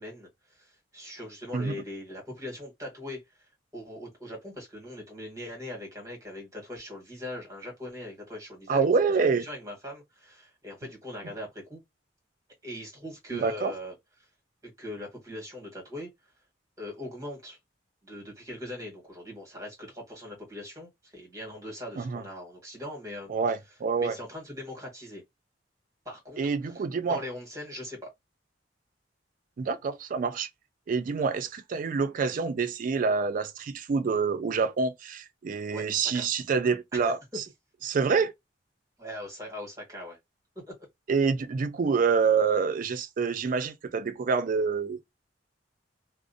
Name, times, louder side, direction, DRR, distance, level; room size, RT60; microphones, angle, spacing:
voice 1, 0.0-11.8 12.6-13.9 14.6-16.1 16.8-17.6 18.0-23.3 24.0-25.2 26.0-26.5 27.0-28.1 35.7-36.3 36.9-37.2 39.0-40.2 40.7-40.8, left 1 dB, 20° right, 1.3 m, -41 dB
voice 2, 1.5-1.8 8.7-9.5 13.3-13.7 22.0-22.2 23.3-24.2 26.4-27.2 29.6-30.5 30.9-37.4 37.8-38.3 41.1-45.1, right 5 dB, 45° right, 0.3 m, -27 dB
2.5 x 2.0 x 2.5 m
head